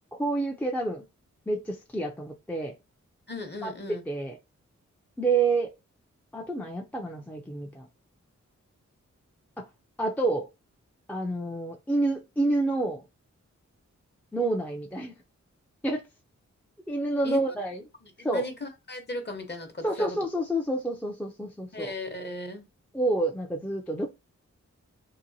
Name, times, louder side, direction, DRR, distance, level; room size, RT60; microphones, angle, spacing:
voice 1, 0.2-1.0 1.5-2.7 3.6-4.4 5.2-5.7 6.3-7.9 9.6-9.7 10.0-10.5 11.1-13.0 14.3-15.2 15.8-16.0 16.9-17.8 18.2-18.5 19.8-21.9 22.9-24.1, right 2 dB, 5° left, 0.5 m, -28 dB
voice 2, 3.3-4.0 17.2-17.4 18.0-20.2 21.7-22.6, left 2 dB, 35° left, 0.9 m, -37 dB
2.8 x 2.2 x 2.7 m
wide cardioid pair, 70°, 29 cm